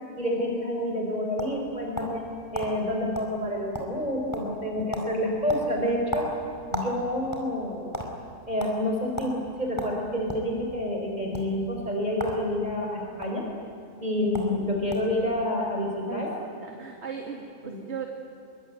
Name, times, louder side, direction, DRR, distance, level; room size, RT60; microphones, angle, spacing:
voice 1, 0.2-2.2 2.5-6.3 6.7-7.9 8.5-13.4 14.0-16.3 17.6-17.8, left 1 dB, 30° right, 0 dB, 4.8 m, -28 dB
sound 1, 0.8-2.2 2.5-2.7 3.1-3.3 3.6-4.1 4.3-4.6 4.9-5.1 5.5-6.9 7.2-8.1 8.6-8.7 9.2-9.3 9.8-10.5 11.2-11.4 12.1-12.4 12.7-13.3 14.0-14.1 14.3-14.5 14.9-15.2, equal, 10° left, 4.9 m, -34 dB
voice 2, 16.1-18.1, right 6 dB, 45° right, 0 dB, 2.7 m, -37 dB
26.0 x 24.0 x 9.4 m, 2.8 s
omnidirectional pair, 1.6 m